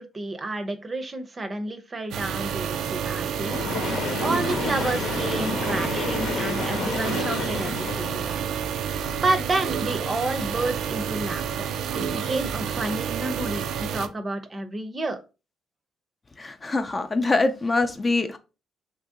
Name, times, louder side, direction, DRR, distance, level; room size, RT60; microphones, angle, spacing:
voice 1, 0.0-3.6 4.2-8.5 9.2-11.7 11.9-15.2, right 2 dB, 30° right, 0.6 m, -30 dB
sound 1, 2.1-14.1, right 8 dB, 80° right, 0.3 m, -29 dB
Train, 3.4-8.4, left 4 dB, 80° left, 0.9 m, -30 dB
voice 2, 16.4-18.4, left 3 dB, 25° left, 0.4 m, -24 dB
2.9 x 2.6 x 3.6 m
cardioid pair, 90°, 0 cm